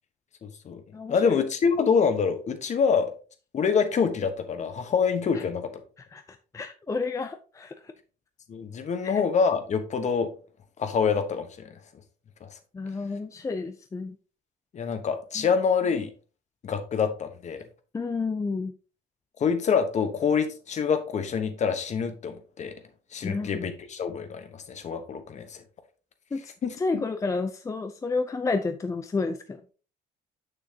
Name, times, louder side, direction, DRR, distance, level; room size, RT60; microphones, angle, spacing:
voice 1, 0.4-0.8 1.1-3.1 3.5-5.7 8.5-10.3 10.8-11.7 12.4-12.5 14.7-16.1 16.6-17.6 19.4-22.7 23.1-25.6 26.6-26.7, left 6 dB, 45° left, 9 dB, 1.2 m, -26 dB
voice 2, 0.9-1.4 5.3-5.4 6.0-7.9 9.0-9.2 12.7-14.2 15.4-15.5 17.9-18.7 23.2-23.6 26.3-26.5 26.8-29.6, left 4 dB, 20° left, 8 dB, 0.5 m, -31 dB
6.6 x 6.4 x 2.8 m, 0.36 s
cardioid pair, 110°, 17 cm